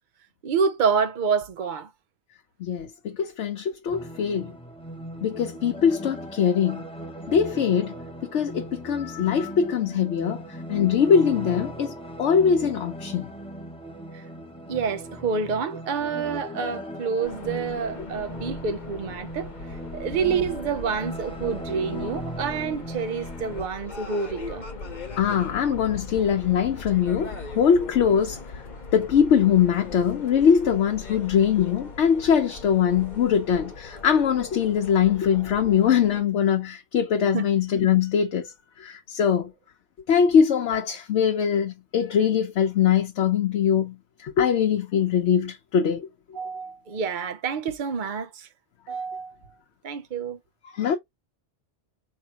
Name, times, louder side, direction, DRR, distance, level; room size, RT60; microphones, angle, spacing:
voice 1, 0.4-1.9 14.1-14.2 14.7-24.6 37.3-37.5 46.3-48.5 48.9-49.5 49.8-50.4, right 5 dB, 50° right, 0.8 m, -28 dB
voice 2, 2.6-4.5 5.2-6.8 7.3-8.0 8.3-11.9 12.2-13.3 25.2-28.4 28.9-39.5 40.1-46.1 50.8-51.0, left 7 dB, 80° left, 1.0 m, -22 dB
sound 1, 3.9-23.6, equal, 5° left, 0.7 m, -38 dB
sound 2, 17.2-36.2, left 3 dB, 40° left, 1.0 m, -40 dB
4.6 x 3.1 x 2.8 m
omnidirectional pair, 1.2 m